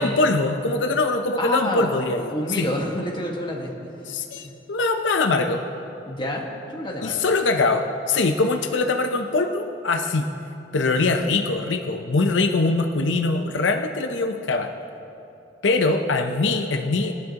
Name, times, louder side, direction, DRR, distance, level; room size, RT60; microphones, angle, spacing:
voice 1, 0.0-2.7 4.1-5.6 7.0-10.3 10.7-14.7 15.6-17.1, left 3 dB, 85° left, 4 dB, 0.7 m, -22 dB
voice 2, 1.4-4.1 6.0-6.4 6.7-7.2, left 1 dB, 25° left, -2 dB, 1.6 m, -28 dB
20.5 x 11.0 x 2.9 m, 2.8 s
head